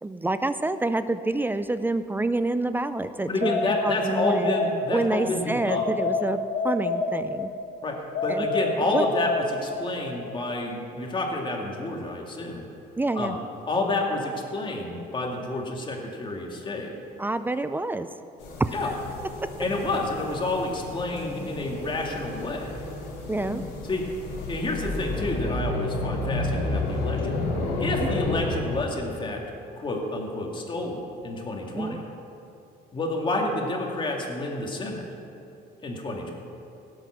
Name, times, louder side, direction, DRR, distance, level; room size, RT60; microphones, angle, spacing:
voice 1, 0.0-4.5 4.9-6.4 6.6-7.5 8.3-8.5 8.9-9.1 13.0-13.4 17.2-18.1 18.6-18.7 23.3-23.6 28.0-28.2 31.7-32.0, right 2 dB, 10° right, 11 dB, 0.4 m, -27 dB
voice 2, 3.3-5.8 7.8-7.9 8.2-12.6 13.2-13.3 13.7-16.9 18.7-18.9 19.6-22.7 23.9-24.0 24.5-27.3 27.8-29.4 29.8-32.0 32.9-35.0 35.8-36.3, left 2 dB, 30° left, 0 dB, 2.3 m, -29 dB
sound 1, 3.4-5.2 5.7-7.6 8.1-10.0, left 3 dB, 60° left, 3.1 m, -28 dB
sound 2, 18.4-28.9, left 2 dB, 80° left, 2.8 m, -31 dB
17.0 x 7.8 x 6.1 m, 2.7 s
cardioid pair, 110°, 17 cm